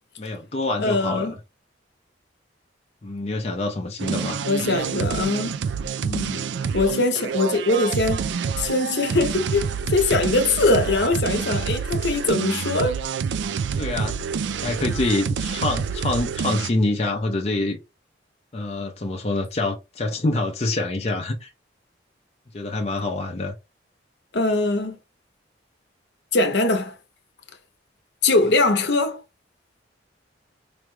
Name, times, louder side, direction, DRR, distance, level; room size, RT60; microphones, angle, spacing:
voice 1, 0.2-1.3 3.0-4.4 6.0-6.4 13.8-14.2 14.6-17.8 18.5-21.5 22.5-23.5, left 2 dB, 35° left, 0.6 m, -26 dB
voice 2, 0.8-1.3 4.5-5.5 6.7-8.2 8.6-13.0 24.3-25.0 26.3-26.9 28.2-29.2, left 2 dB, 65° left, 0.8 m, -21 dB
sound 1, 4.0-16.7, right 6 dB, 75° right, 0.3 m, -27 dB
4.9 x 2.2 x 3.1 m
head